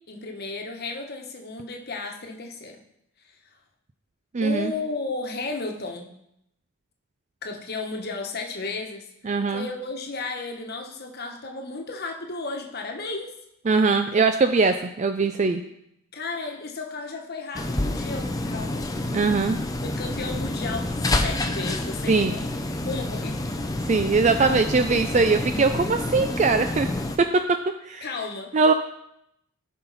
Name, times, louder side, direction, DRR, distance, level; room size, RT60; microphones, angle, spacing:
voice 1, 0.1-2.8 4.4-6.1 7.4-9.0 9.5-13.3 16.1-18.9 20.0-22.5 22.8-23.5 24.4-24.7 28.0-28.5, left 3 dB, 45° left, 3 dB, 1.2 m, -33 dB
voice 2, 4.3-4.7 9.2-9.7 13.7-15.6 19.1-19.6 22.1-22.3 23.9-26.9 27.2-27.6 27.8-28.1 28.5-28.7, right 4 dB, 30° right, 8 dB, 0.4 m, -21 dB
sound 1, 17.5-27.2, left 1 dB, 15° left, 0.6 m, -28 dB
16.5 x 5.6 x 4.1 m, 0.80 s
head